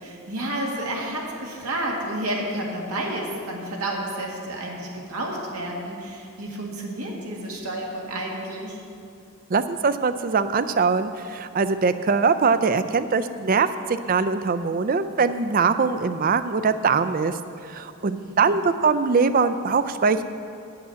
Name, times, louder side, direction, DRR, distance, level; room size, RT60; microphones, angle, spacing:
voice 1, 0.0-8.8 18.1-18.5, right 1 dB, 80° right, -2 dB, 1.8 m, -30 dB
voice 2, 9.5-17.4 17.6-20.2, right 5 dB, 40° right, 12 dB, 0.4 m, -22 dB
8.7 x 6.9 x 8.6 m, 2.5 s
head